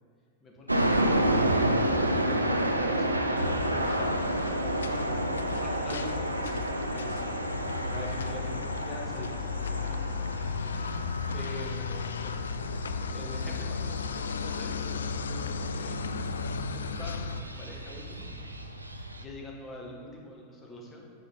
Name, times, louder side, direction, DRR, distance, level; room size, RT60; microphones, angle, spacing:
voice 1, 0.4-4.2 4.8-7.2 7.8-10.4 11.3-12.4 13.1-16.0 16.7-18.3 19.2-21.1, left 2 dB, 25° left, -1 dB, 1.6 m, -45 dB
sound 1, 0.7-19.2, right 1 dB, 85° right, 0.5 m, -31 dB
sound 2, 3.4-17.4, left 5 dB, 70° left, 0.3 m, -35 dB
7.5 x 6.3 x 3.7 m, 2.3 s
figure-of-eight pair, 90°, 0 cm